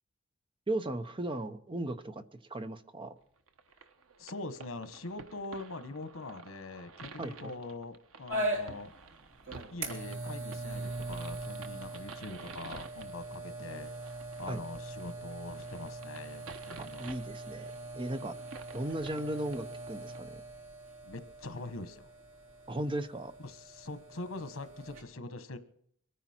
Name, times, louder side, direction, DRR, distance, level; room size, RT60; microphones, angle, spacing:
voice 1, 0.7-2.2 2.5-3.1 7.2-7.5 14.5-14.6 16.8-18.3 18.7-20.4 22.7-23.3, right 1 dB, 25° right, 10 dB, 0.8 m, -36 dB
sound 1, 3.5-20.2, right 4 dB, 90° right, 1.0 m, -51 dB
voice 2, 4.2-8.9 9.7-13.9 14.4-17.1 21.0-22.1 23.4-25.6, left 2 dB, 85° left, 10 dB, 1.2 m, -43 dB
sound 2, 8.3-25.0, right 1 dB, 70° right, 3.2 m, -41 dB
24.5 x 10.0 x 4.4 m, 0.66 s
head